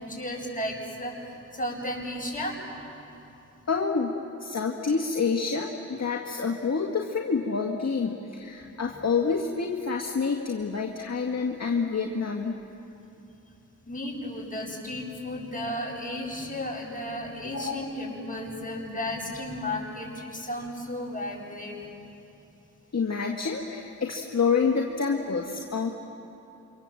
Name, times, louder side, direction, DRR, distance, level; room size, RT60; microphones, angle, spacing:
voice 1, 0.0-2.6 13.9-21.8, left 1 dB, 25° left, -2 dB, 8.0 m, -34 dB
voice 2, 3.7-4.1 4.4-12.6 17.5-17.8 22.9-25.9, left 5 dB, 55° left, 0 dB, 1.8 m, -28 dB
28.0 x 25.0 x 7.7 m, 2.8 s
cardioid pair, 40°, 32 cm